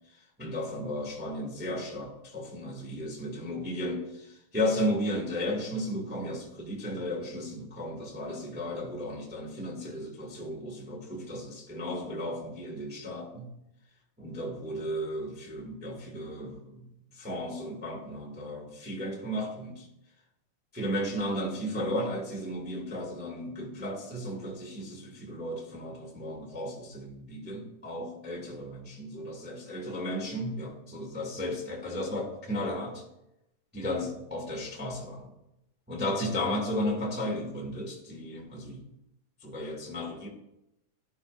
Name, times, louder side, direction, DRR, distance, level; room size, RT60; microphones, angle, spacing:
voice 1, 0.4-13.5 14.2-16.9 17.1-19.8 20.7-33.0 33.7-35.3 35.9-38.8 39.4-40.3, left 1 dB, 5° right, -2 dB, 1.1 m, -34 dB
17.5 x 11.5 x 2.5 m, 0.89 s
omnidirectional pair, 3.8 m